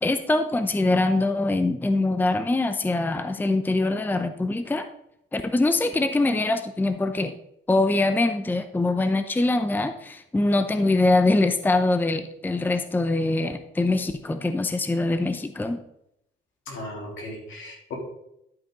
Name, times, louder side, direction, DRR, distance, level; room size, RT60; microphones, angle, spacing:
voice 1, 0.0-4.9 5.3-7.3 7.7-15.8, left 2 dB, 10° left, 9 dB, 0.6 m, -23 dB
voice 2, 16.7-17.9, left 2 dB, 75° left, -1 dB, 3.1 m, -36 dB
11.5 x 5.1 x 3.8 m, 0.78 s
cardioid pair, 90°, 20 cm